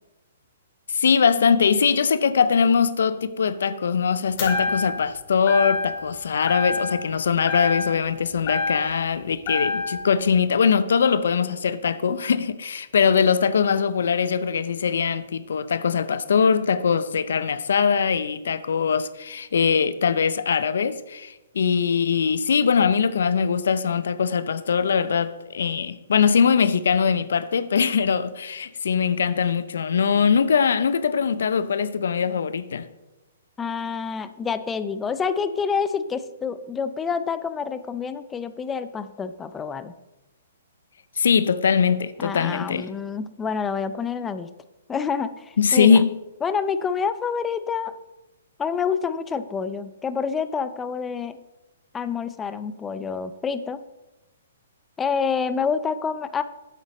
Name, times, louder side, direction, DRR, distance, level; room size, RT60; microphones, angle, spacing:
voice 1, 0.9-32.9 41.2-42.9 45.6-46.1, left 6 dB, 75° left, 0.5 m, -21 dB
sound 1, 4.4-5.1 5.5-6.1 6.5-7.2 7.5-9.1 9.5-10.1, left 3 dB, 40° left, 2.8 m, -27 dB
voice 2, 33.6-39.9 42.2-44.5 44.9-46.0 46.4-47.9 48.6-51.4 51.9-53.8 55.0-56.4, left 6 dB, 15° left, 0.5 m, -27 dB
8.3 x 8.2 x 4.1 m
hypercardioid pair, 135°, 0 cm